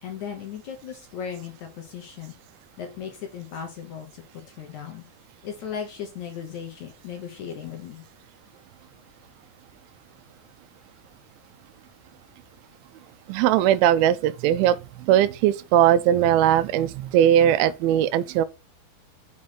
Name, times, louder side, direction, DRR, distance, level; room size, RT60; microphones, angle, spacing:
voice 1, 0.0-2.4 2.8-5.1 5.4-8.0, left 8 dB, 65° left, 2.0 m, -37 dB
voice 2, 13.3-14.8 15.1-18.5, right 11 dB, 85° right, 2.4 m, -19 dB
6.3 x 3.1 x 5.6 m
omnidirectional pair, 4.3 m